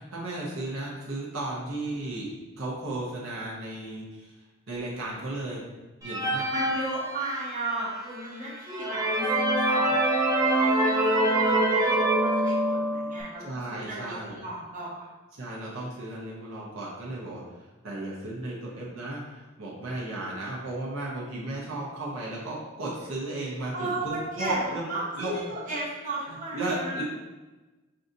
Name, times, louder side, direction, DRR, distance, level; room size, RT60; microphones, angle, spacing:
voice 1, 0.0-4.3 4.7-5.6 6.0-6.5 13.4-14.4 15.4-17.4 17.8-24.8 25.1-25.5 26.3-27.0, right 2 dB, 80° right, -5 dB, 0.9 m, -34 dB
sound 1, 6.0-7.7 8.2-8.3 8.7-13.2, right 1 dB, 15° right, 0.5 m, -24 dB
voice 2, 6.5-15.0 23.7-24.6 24.9-27.0, right 2 dB, 40° right, -7 dB, 1.0 m, -35 dB
5.6 x 2.6 x 2.6 m, 1.2 s
head